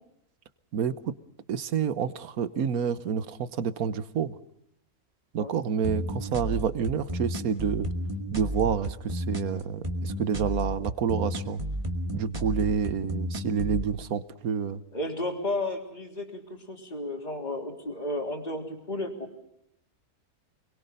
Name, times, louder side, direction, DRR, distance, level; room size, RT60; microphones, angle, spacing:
voice 1, 0.7-1.1 1.5-4.4 5.3-7.9 8.3-11.6 12.1-14.8, right 7 dB, 75° right, 14 dB, 1.5 m, -28 dB
sound 1, 5.8-13.8, equal, 20° right, 2.3 m, -32 dB
voice 2, 14.9-19.4, left 1 dB, 30° left, 3 dB, 3.7 m, -33 dB
29.5 x 22.0 x 5.4 m, 0.76 s
omnidirectional pair, 1.6 m